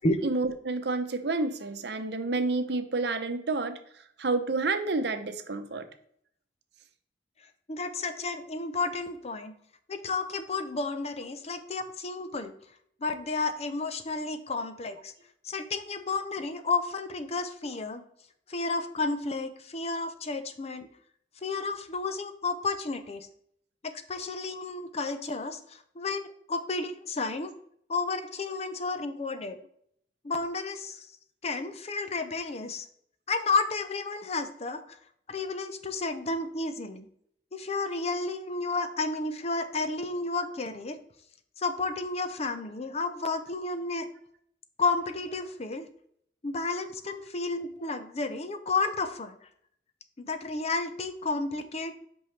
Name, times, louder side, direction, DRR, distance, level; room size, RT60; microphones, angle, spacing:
voice 1, 0.2-3.8 4.2-5.9, right 3 dB, 65° right, 8 dB, 0.8 m, -29 dB
voice 2, 7.7-9.5 9.9-12.5 13.0-15.1 15.4-18.0 18.5-20.9 21.4-23.3 23.8-27.5 27.9-29.6 30.2-31.1 31.4-32.9 33.3-35.0 35.3-37.1 37.5-41.0 41.6-44.1 44.8-45.9 46.4-49.4 50.2-52.0, left 3 dB, 35° left, 10 dB, 0.6 m, -32 dB
8.4 x 5.4 x 3.3 m, 0.68 s
head